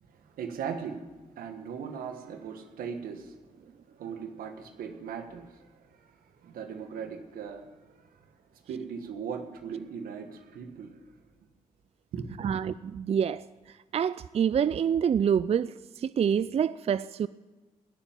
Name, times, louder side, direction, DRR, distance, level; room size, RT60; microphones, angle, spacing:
voice 1, 0.1-1.0 1.3-3.5 3.9-8.2 8.5-11.0 12.1-12.5, right 6 dB, 85° right, 1.4 m, -39 dB
voice 2, 12.4-13.4 13.9-17.3, right 8 dB, 45° right, 0.4 m, -27 dB
16.5 x 7.2 x 9.3 m
supercardioid pair, 55°, 15 cm